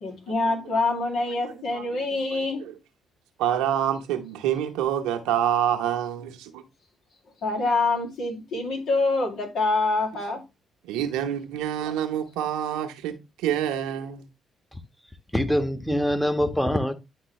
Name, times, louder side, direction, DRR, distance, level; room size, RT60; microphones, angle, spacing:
voice 1, 0.0-2.6 7.4-10.4, left 3 dB, 65° left, 2.3 m, -25 dB
voice 2, 1.3-1.9 2.3-2.8 3.4-6.6 10.8-14.3, right 10 dB, 75° right, 1.0 m, -27 dB
voice 3, 15.3-16.9, equal, 5° left, 1.3 m, -24 dB
10.0 x 3.8 x 3.1 m
hypercardioid pair, 45°, 0 cm